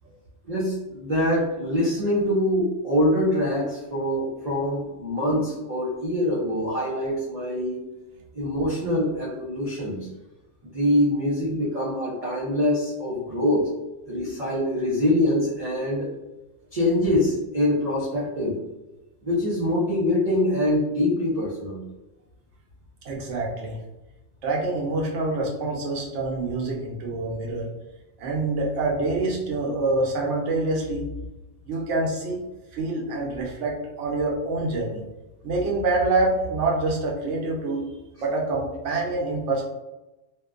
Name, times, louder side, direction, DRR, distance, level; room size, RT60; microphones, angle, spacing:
voice 1, 0.5-7.8 8.3-10.1 10.6-13.7 14.0-16.1 16.7-18.6 19.2-21.8, left 1 dB, 45° right, -7 dB, 0.5 m, -24 dB
voice 2, 23.0-23.8 24.4-27.7 28.2-31.1 31.7-32.4 32.7-35.0 35.4-37.9 38.2-39.6, right 2 dB, 80° right, -1 dB, 1.0 m, -26 dB
2.6 x 2.2 x 2.3 m, 1.0 s
omnidirectional pair, 1.2 m